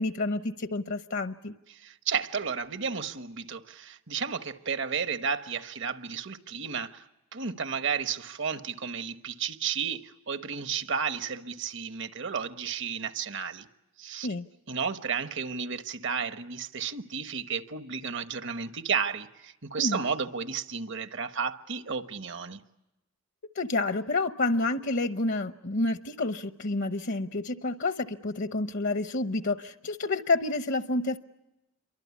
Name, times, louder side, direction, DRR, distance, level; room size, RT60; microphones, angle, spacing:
voice 1, 0.0-1.5 14.2-14.5 19.8-20.0 23.6-31.2, left 2 dB, 60° left, 0.9 m, -29 dB
voice 2, 1.7-7.0 7.3-13.7 14.0-14.3 14.7-22.6, right 6 dB, 60° right, 1.2 m, -32 dB
28.0 x 24.0 x 8.4 m
head